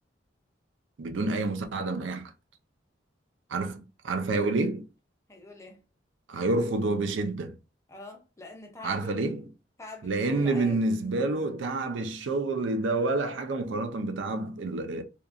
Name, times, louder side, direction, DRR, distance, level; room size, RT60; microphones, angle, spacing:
voice 1, 1.0-2.3 3.5-4.8 6.3-7.5 8.8-9.5 10.0-15.0, right 2 dB, 80° right, 0.5 m, -28 dB
voice 2, 5.3-5.8 7.9-9.3 9.8-10.9, left 2 dB, 15° left, 0.5 m, -45 dB
2.9 x 2.3 x 2.4 m
head